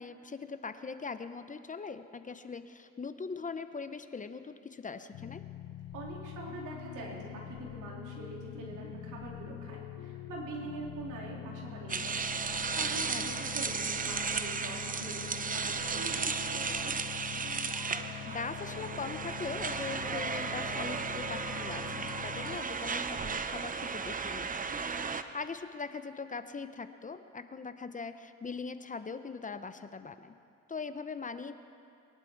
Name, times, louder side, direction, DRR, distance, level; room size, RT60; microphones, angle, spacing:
voice 1, 0.0-5.4 13.1-13.5 18.2-30.3 30.7-31.5, left 4 dB, 25° left, 11 dB, 0.7 m, -41 dB
sound 1, 5.1-22.6, left 12 dB, 75° left, 0.6 m, -44 dB
voice 2, 5.9-12.4 12.7-15.2 15.5-16.9, right 3 dB, 85° right, -2 dB, 3.5 m, -44 dB
sound 2, 11.9-25.2, right 5 dB, 30° right, 0.7 m, -35 dB
22.5 x 11.5 x 4.6 m, 2.5 s
cardioid pair, 90°, 30 cm